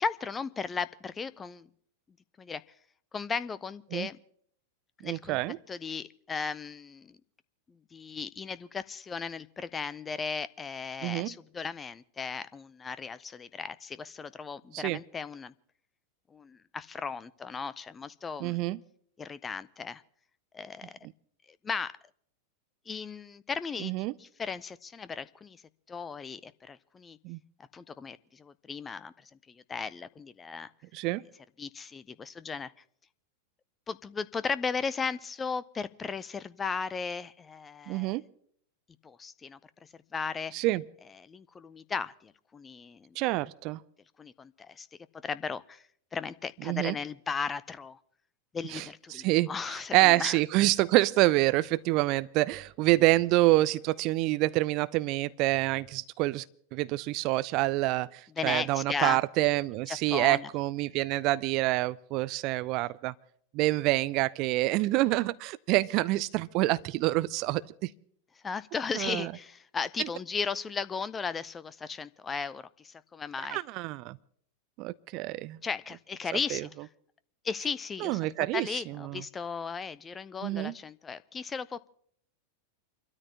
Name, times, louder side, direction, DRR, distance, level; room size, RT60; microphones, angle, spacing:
voice 1, 0.0-1.7 2.4-2.6 3.1-4.2 5.0-5.4 5.7-7.2 7.7-15.5 16.3-18.6 19.2-20.0 20.5-20.9 21.5-22.0 22.9-25.6 25.9-27.2 27.7-30.7 31.6-32.7 33.9-38.2 39.0-39.6 40.1-40.5 41.2-43.2 44.2-44.9 45.2-45.8 46.1-48.0 48.5-50.4 58.4-59.2 59.9-60.5 68.4-73.6 75.6-76.9 77.4-78.3 78.5-81.9, left 5 dB, 20° left, 0.5 m, -36 dB
voice 2, 5.0-5.6 11.0-11.3 14.7-15.0 18.4-18.8 23.8-24.1 27.2-27.4 30.9-31.2 37.9-38.2 40.5-40.8 43.2-43.8 46.7-46.9 48.7-48.8 49.1-49.5 49.9-56.4 56.7-63.1 63.5-67.9 68.9-69.3 73.5-74.2 74.8-75.6 76.5-76.6 78.0-78.7 79.1-79.2 80.4-80.7, right 18 dB, 40° right, 0.5 m, -27 dB
29.0 x 13.0 x 2.9 m
figure-of-eight pair, 90°, 0 cm